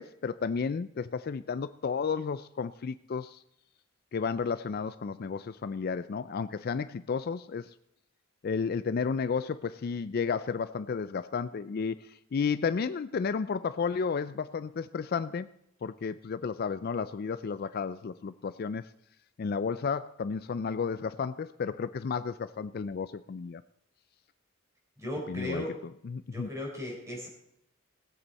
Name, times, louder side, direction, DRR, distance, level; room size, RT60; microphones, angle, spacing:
voice 1, 0.0-3.4 4.1-7.7 8.4-15.5 15.8-18.9 19.4-23.6 25.3-25.7 26.0-26.5, left 5 dB, 45° left, 13 dB, 0.3 m, -32 dB
voice 2, 25.0-25.8 26.3-27.3, left 1 dB, 15° right, -2 dB, 4.0 m, -36 dB
19.5 x 8.1 x 4.1 m, 0.75 s
head